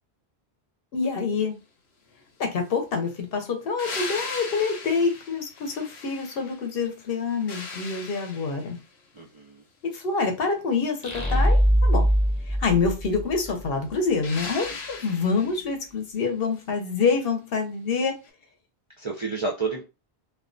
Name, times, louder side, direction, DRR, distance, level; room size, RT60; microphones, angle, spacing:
voice 1, 0.9-1.6 2.4-8.8 9.8-12.1 12.5-18.1, left 4 dB, 65° left, 0.8 m, -26 dB
sound 1, 3.8-6.7 7.1-8.9 14.2-15.7 18.2-18.3, left 4 dB, 85° left, 1.0 m, -38 dB
voice 2, 9.1-9.6 14.7-15.1 19.0-19.8, right 4 dB, 45° right, 0.4 m, -31 dB
sound 2, 11.0-13.7, equal, 15° left, 0.8 m, -22 dB
2.3 x 2.3 x 2.4 m
omnidirectional pair, 1.1 m